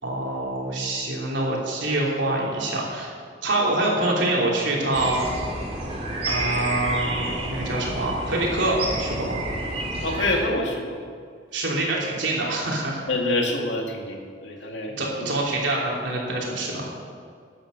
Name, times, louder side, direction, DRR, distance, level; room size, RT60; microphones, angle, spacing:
voice 1, 0.0-3.1 3.4-5.4 6.2-9.4 11.5-13.1 15.0-16.9, right 2 dB, 80° right, -3 dB, 3.2 m, -25 dB
sound 1, 4.9-10.4, right 2 dB, 35° right, 2.8 m, -30 dB
voice 2, 10.0-11.0 13.1-15.3, left 2 dB, 80° left, 1 dB, 2.1 m, -26 dB
12.5 x 9.2 x 6.5 m, 2.1 s
head